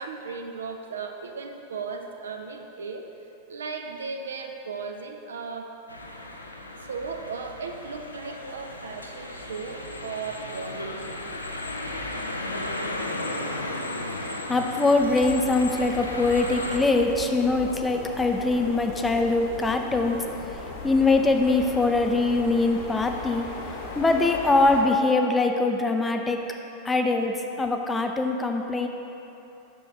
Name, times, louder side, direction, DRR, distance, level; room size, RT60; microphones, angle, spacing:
voice 1, 0.0-3.0 3.5-5.7 6.9-11.3, right 5 dB, 70° right, 4 dB, 0.5 m, -36 dB
sound 1, 5.9-16.8, left 1 dB, 80° left, 0.5 m, -35 dB
voice 2, 14.5-20.2 20.8-23.5 24.0-26.4 26.8-28.9, left 3 dB, 10° left, 4 dB, 0.5 m, -23 dB
sound 2, 15.0-24.8, left 3 dB, 55° left, 1.2 m, -38 dB
7.4 x 6.2 x 3.3 m, 2.9 s
figure-of-eight pair, 90°, 0 cm